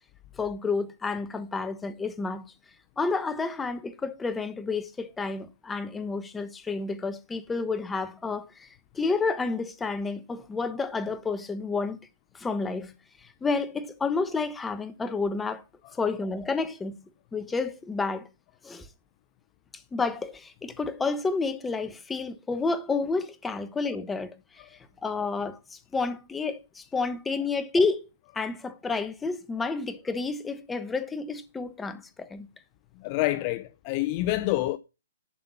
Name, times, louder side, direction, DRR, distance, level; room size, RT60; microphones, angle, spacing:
voice 1, 0.4-2.5 3.0-12.0 12.3-12.9 13.2-15.6 15.9-17.0 17.3-18.3 18.6-18.9 19.7-28.1 28.3-32.5, left 4 dB, 10° left, 1.1 m, -30 dB
voice 2, 33.0-34.8, left 17 dB, 35° left, 0.6 m, -27 dB
11.0 x 5.7 x 7.0 m
hypercardioid pair, 145°, 0 cm